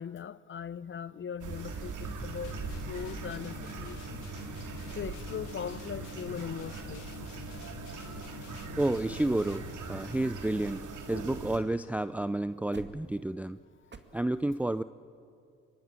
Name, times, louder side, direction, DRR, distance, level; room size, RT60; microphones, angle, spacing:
voice 1, 0.0-4.2 5.0-7.0, left 7 dB, 35° left, 0.8 m, -40 dB
sound 1, 1.4-11.6, right 4 dB, 60° right, 3.5 m, -41 dB
sound 2, 2.4-10.0, left 18 dB, 75° left, 0.7 m, -48 dB
sound 3, 7.8-8.6 9.1-9.2 9.4-9.7 10.0-11.6 11.9-12.0 12.3-14.0, right 4 dB, 30° right, 2.3 m, -55 dB
voice 2, 8.8-10.8 11.1-13.6 14.1-14.8, right 1 dB, 5° right, 0.5 m, -30 dB
25.0 x 23.0 x 9.0 m
hypercardioid pair, 55°, 34 cm